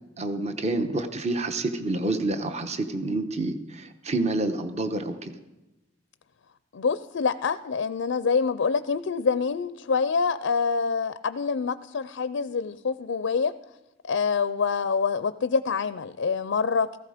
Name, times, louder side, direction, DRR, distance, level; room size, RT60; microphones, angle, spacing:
voice 1, 0.2-5.4, right 2 dB, 35° right, 8 dB, 1.0 m, -28 dB
voice 2, 6.7-13.6 14.0-17.0, left 5 dB, 75° left, 14 dB, 0.5 m, -26 dB
17.0 x 15.0 x 5.0 m, 1.0 s
head